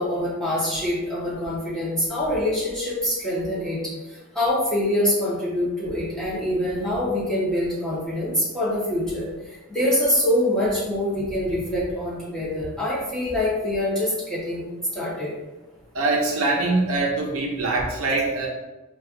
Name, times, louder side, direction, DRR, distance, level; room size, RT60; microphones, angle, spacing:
voice 1, 0.0-3.8 4.3-9.3 9.7-14.6 14.9-15.3, left 1 dB, 5° left, -8 dB, 1.0 m, -25 dB
voice 2, 15.9-18.5, right 2 dB, 70° right, -1 dB, 0.6 m, -23 dB
4.3 x 2.4 x 2.5 m, 1.1 s
head